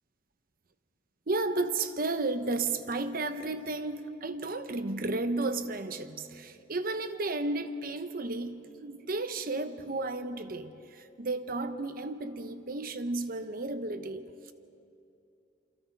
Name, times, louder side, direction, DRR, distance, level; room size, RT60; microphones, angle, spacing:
voice 1, 1.3-14.5, right 2 dB, 50° right, 10 dB, 1.0 m, -33 dB
27.5 x 25.0 x 4.7 m, 2.7 s
head